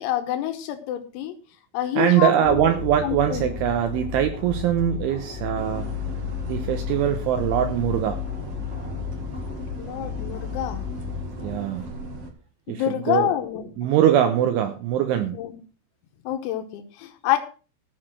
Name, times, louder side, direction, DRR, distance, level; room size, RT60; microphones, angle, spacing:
voice 1, 0.0-1.3 1.7-2.7 3.0-3.5 9.8-10.9 12.7-13.9 15.4-15.6 16.3-17.4, left 12 dB, 85° left, 6 dB, 3.8 m, -27 dB
voice 2, 2.0-5.9 6.5-8.2 11.4-11.9 12.7-13.3 13.8-15.4, right 10 dB, 75° right, 7 dB, 3.2 m, -22 dB
sound 1, 2.4-11.6, left 8 dB, 10° left, 5.1 m, -33 dB
sound 2, 5.6-12.3, right 2 dB, 60° right, 1.6 m, -37 dB
15.0 x 6.7 x 6.3 m, 0.36 s
omnidirectional pair, 6.0 m